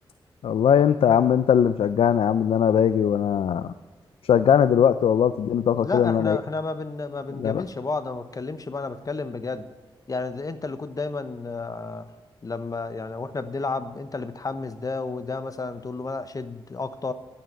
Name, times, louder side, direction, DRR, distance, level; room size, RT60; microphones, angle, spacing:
voice 1, 0.4-3.7 4.2-6.4 7.4-7.6, left 8 dB, 85° left, 13 dB, 0.4 m, -20 dB
voice 2, 5.7-9.7 10.1-12.1 12.4-17.1, left 3 dB, 40° left, 11 dB, 0.9 m, -31 dB
11.5 x 9.3 x 6.5 m, 1.3 s
cardioid pair, 70°, 10 cm